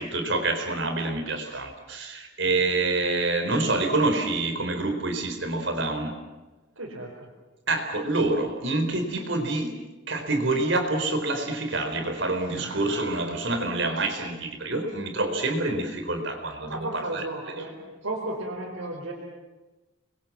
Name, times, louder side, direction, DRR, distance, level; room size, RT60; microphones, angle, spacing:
voice 1, 0.0-6.1 7.7-9.7 10.1-17.6, right 2 dB, 60° right, 5 dB, 4.5 m, -27 dB
voice 2, 6.8-7.1 12.5-12.9 16.7-17.8 18.0-19.1, right 1 dB, 80° right, -2 dB, 5.0 m, -34 dB
30.0 x 22.5 x 7.5 m, 1.1 s
head